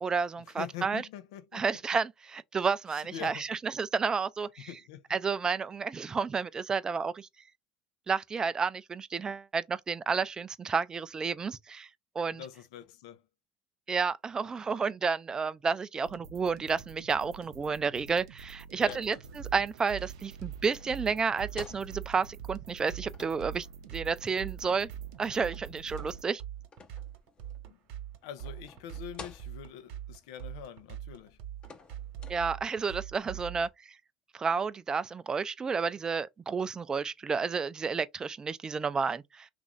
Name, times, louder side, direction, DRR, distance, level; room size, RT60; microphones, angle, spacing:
voice 1, 0.0-1.0 1.5-4.7 5.1-7.3 8.1-11.9 12.2-12.4 13.9-23.7 23.9-24.9 25.2-26.4 32.3-34.0 34.3-39.5, right 5 dB, 25° right, 0.4 m, -31 dB
voice 2, 0.6-1.8 2.9-3.4 4.6-5.1 12.3-13.2 18.8-19.2 27.7-27.8 28.2-31.4, left 10 dB, 80° left, 0.5 m, -44 dB
sound 1, 16.0-26.2, right 6 dB, 90° right, 0.6 m, -50 dB
sound 2, 18.3-32.9, left 4 dB, 35° left, 0.8 m, -54 dB
sound 3, 19.4-33.7, right 11 dB, 70° right, 1.1 m, -42 dB
3.0 x 2.5 x 3.6 m
supercardioid pair, 90°, 3 cm